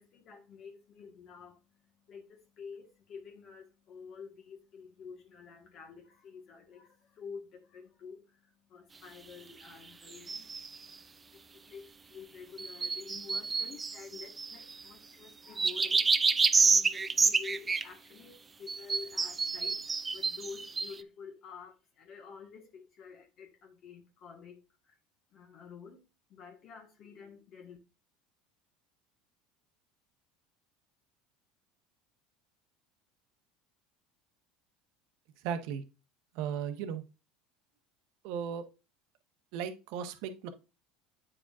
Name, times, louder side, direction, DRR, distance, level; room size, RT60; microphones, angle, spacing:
voice 1, 0.0-25.0 25.3-26.0 26.3-27.8, left 6 dB, 50° left, 1.4 m, -50 dB
sound 1, 10.1-10.8 12.6-14.8 15.6-17.8 18.7-20.9, right 4 dB, 20° right, 0.4 m, -28 dB
voice 2, 35.4-35.8 36.3-37.0 38.2-38.6 39.5-40.5, right 8 dB, 70° right, 0.9 m, -36 dB
8.6 x 4.8 x 2.4 m
supercardioid pair, 100°, 0 cm